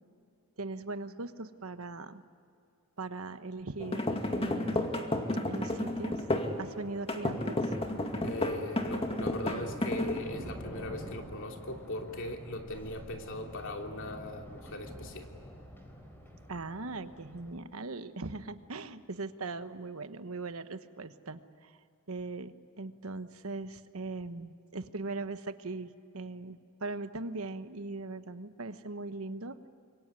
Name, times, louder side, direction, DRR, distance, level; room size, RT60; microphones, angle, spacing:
voice 1, 0.6-2.2 3.0-4.9 5.4-6.2 6.6-7.7 16.5-21.8 22.1-29.6, right 3 dB, 75° right, 10 dB, 1.2 m, -40 dB
sound 1, 3.8-6.6 7.1-10.2, left 1 dB, 25° left, 2.1 m, -32 dB
Thunder, 6.4-17.5, equal, 10° left, 4.2 m, -48 dB
voice 2, 8.2-15.3, left 1 dB, 60° left, 3 dB, 3.0 m, -39 dB
26.5 x 23.0 x 9.8 m, 2.5 s
head